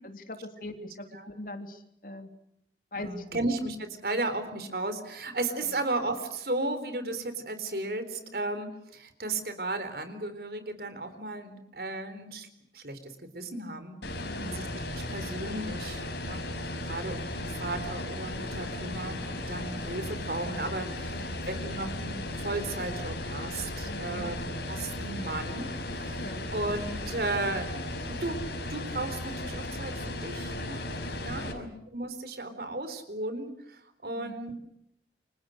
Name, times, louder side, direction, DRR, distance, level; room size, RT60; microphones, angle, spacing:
voice 1, 0.0-2.3 2.9-3.4 5.6-5.8 8.2-8.4 14.2-14.5 16.8-17.1 21.1-21.4 23.8-24.3 26.1-26.4 31.3-31.7 34.2-34.3, left 1 dB, 50° left, 6 dB, 3.1 m, -42 dB
voice 2, 2.9-12.5 12.7-14.0 14.4-14.7 14.9-25.7 25.9-27.7 28.1-28.4 28.7-30.9 31.2-34.5, right 2 dB, 60° right, 10 dB, 4.0 m, -35 dB
fan loop, 14.0-31.5, left 1 dB, 80° left, 5.8 m, -36 dB
29.0 x 25.5 x 6.5 m, 0.78 s
head